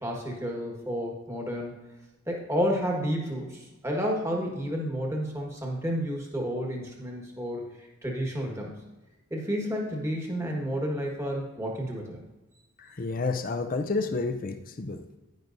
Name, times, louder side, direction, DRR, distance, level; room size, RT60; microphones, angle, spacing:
voice 1, 0.0-1.8 2.3-8.8 9.3-12.2, equal, 15° right, 0 dB, 1.4 m, -31 dB
voice 2, 12.8-15.0, left 3 dB, 40° left, 7 dB, 0.5 m, -30 dB
10.5 x 9.9 x 2.6 m, 1.1 s
head